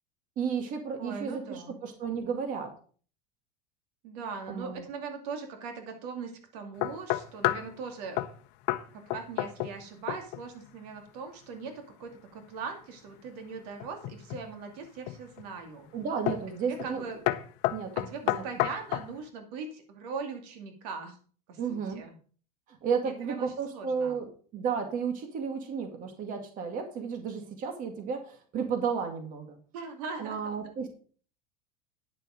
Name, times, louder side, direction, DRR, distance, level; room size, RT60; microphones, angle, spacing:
voice 1, 0.4-2.7 4.5-4.9 15.9-17.0 17.7-18.4 21.6-22.0 22.7-24.3 24.5-29.6 30.2-30.9, right 6 dB, 40° right, 4 dB, 2.2 m, -33 dB
voice 2, 1.0-1.8 4.0-8.2 8.9-15.9 16.7-17.2 18.1-21.2 21.5-22.1 23.0-24.2 29.7-30.9, right 5 dB, 75° right, 5 dB, 2.4 m, -40 dB
sound 1, 6.8-7.7 8.2-8.4 8.7-8.8 9.1-9.8 10.1-10.4 13.8-14.5 15.1-15.5 16.3-16.5 16.8-17.0 17.3-19.1, left 16 dB, 60° left, 0.8 m, -30 dB
10.5 x 6.8 x 5.0 m, 0.43 s
supercardioid pair, 130°, 20 cm